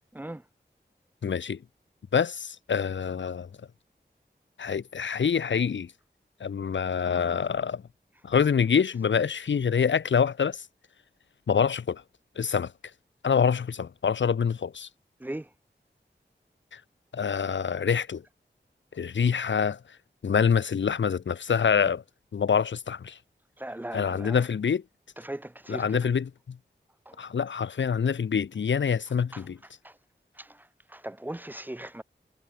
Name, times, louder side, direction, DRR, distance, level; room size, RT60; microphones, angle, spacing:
voice 1, 1.2-1.6 2.1-3.5 4.6-5.9 6.4-7.8 8.2-10.6 11.5-12.0 12.4-12.7 13.2-14.9 16.7-16.8 17.1-18.2 19.0-19.8 20.2-22.0 22.3-23.2 23.9-24.8 25.7-26.6 27.2-29.6, left 6 dB, 80° left, 0.5 m, -26 dB
voice 2, 23.6-24.4 25.2-26.1 27.1-27.2 29.3-29.4 29.8-29.9 30.4-30.6 30.9-32.0, right 1 dB, 10° right, 0.3 m, -38 dB
wide cardioid pair, 65°, 19 cm